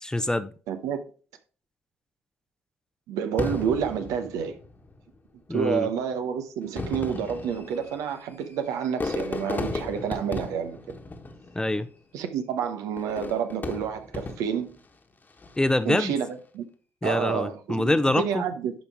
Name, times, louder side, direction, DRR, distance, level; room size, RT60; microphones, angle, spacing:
voice 1, 0.0-0.5 5.5-5.9 11.5-11.9 15.6-16.1 17.0-18.4, left 1 dB, 10° left, 0.7 m, -25 dB
voice 2, 0.7-1.0 3.1-4.5 5.5-11.0 12.1-14.8 15.9-16.7 17.0-18.7, right 7 dB, 65° right, 0.9 m, -29 dB
Fireworks, 3.4-5.0 5.8-5.9 6.6-11.9 13.0-14.7 15.3-15.8, left 3 dB, 30° left, 1.4 m, -35 dB
10.5 x 5.3 x 3.5 m
figure-of-eight pair, 45°, 6 cm